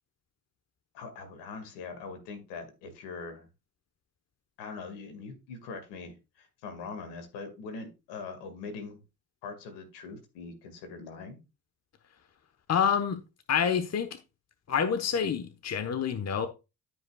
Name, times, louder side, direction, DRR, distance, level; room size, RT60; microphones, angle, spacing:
voice 1, 0.9-3.5 4.6-9.0 9.4-11.4, left 4 dB, 75° left, 2.1 m, -42 dB
voice 2, 12.7-13.2 13.5-14.2 14.7-16.5, left 7 dB, 40° left, 1.1 m, -27 dB
13.0 x 5.4 x 2.3 m
hypercardioid pair, 55°, 41 cm